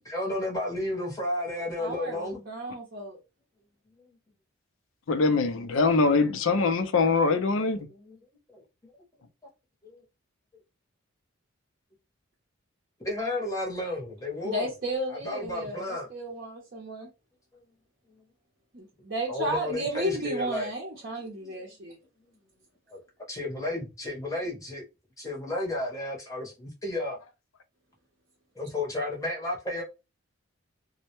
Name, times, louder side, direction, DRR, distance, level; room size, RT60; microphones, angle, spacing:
voice 1, 0.1-2.4 6.3-6.5 7.4-8.2 8.5-8.6 9.8-10.0 13.0-14.7 15.1-16.1 17.5-17.6 19.3-20.7 21.4-21.5 22.9-23.0 23.3-24.8 25.2-27.2 28.6-29.8, left 1 dB, 15° left, 0.8 m, -32 dB
voice 2, 1.8-3.2 14.4-17.1 18.7-22.0, right 1 dB, 45° right, 0.6 m, -33 dB
voice 3, 5.1-7.9, left 4 dB, 70° left, 0.4 m, -23 dB
2.1 x 2.1 x 2.9 m
head